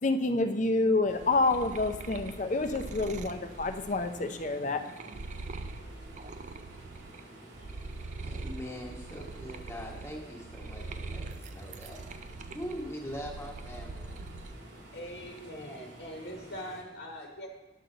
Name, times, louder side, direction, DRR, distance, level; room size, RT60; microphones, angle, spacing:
voice 1, 0.0-4.8, left 2 dB, 40° left, 7 dB, 0.6 m, -28 dB
sound 1, 1.0-7.2 7.5-14.6 15.0-15.6, right 3 dB, 40° right, 0.4 m, -43 dB
sound 2, 1.1-16.8, right 1 dB, 85° right, 2.0 m, -50 dB
voice 2, 8.2-12.0 12.5-14.2, equal, 15° left, -2 dB, 1.3 m, -42 dB
voice 3, 14.9-17.5, equal, 55° left, 0 dB, 1.1 m, -42 dB
10.0 x 7.8 x 3.9 m, 1.1 s
head